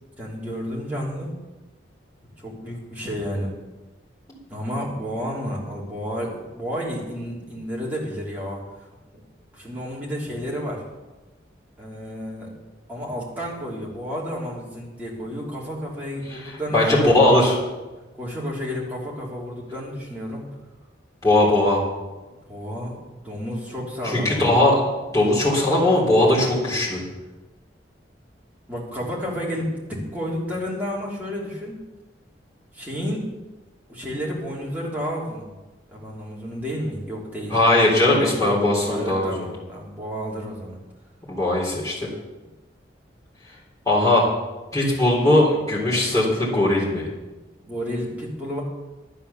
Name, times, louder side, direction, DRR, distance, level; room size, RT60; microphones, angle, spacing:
voice 1, 0.2-1.3 2.4-3.5 4.5-8.6 9.5-10.8 11.8-12.5 12.9-17.4 18.2-20.4 22.5-23.0 23.2-24.6 28.7-31.7 32.7-33.2 33.9-35.5 35.9-37.6 38.1-38.6 38.9-40.8 47.6-48.6, equal, 10° right, -5 dB, 3.1 m, -31 dB
voice 2, 16.3-17.5 21.2-21.8 24.0-24.8 25.1-27.0 37.5-39.4 41.3-42.1 43.9-44.3 44.7-47.1, left 1 dB, 15° left, -6 dB, 3.9 m, -19 dB
11.5 x 9.1 x 7.1 m, 1.1 s
head